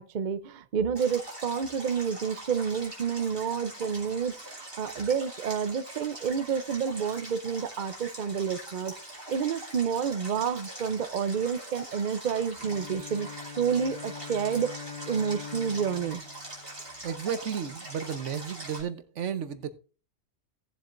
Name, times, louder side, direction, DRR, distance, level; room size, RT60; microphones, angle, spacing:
voice 1, 0.0-4.4 4.8-8.9 9.3-13.3 13.6-14.8 15.1-16.2, right 7 dB, 50° right, 0.6 m, -29 dB
Stream, 1.0-18.8, right 1 dB, 25° right, 3.2 m, -43 dB
Bowed string instrument, 12.6-17.5, left 5 dB, 25° left, 2.9 m, -43 dB
voice 2, 17.0-19.8, right 8 dB, 70° right, 1.2 m, -33 dB
17.5 x 7.5 x 2.5 m
omnidirectional pair, 1.3 m